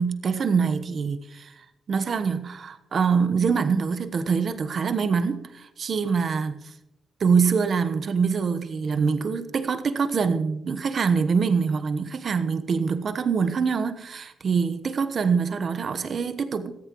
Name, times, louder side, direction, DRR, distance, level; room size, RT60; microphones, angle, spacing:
voice 1, 0.0-1.5 1.9-6.6 7.2-16.8, right 5 dB, 55° right, 11 dB, 1.1 m, -24 dB
20.0 x 14.5 x 3.1 m, 0.83 s
cardioid pair, 75°, 0 cm